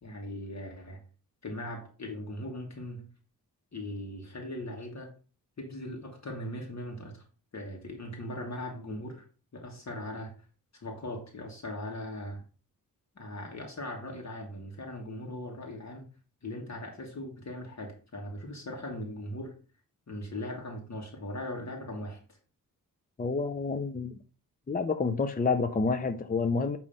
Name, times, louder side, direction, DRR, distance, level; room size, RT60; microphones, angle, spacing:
voice 1, 0.0-1.0 1.4-3.1 3.7-5.1 5.6-7.2 7.5-9.2 9.5-10.3 10.7-12.4 13.1-16.1 16.4-19.5 20.1-22.2, left 1 dB, 50° left, 1.5 m, -39 dB
voice 2, 23.2-24.1 24.7-26.8, left 4 dB, 25° left, 0.5 m, -28 dB
8.7 x 3.1 x 5.2 m
wide cardioid pair, 115°, 35 cm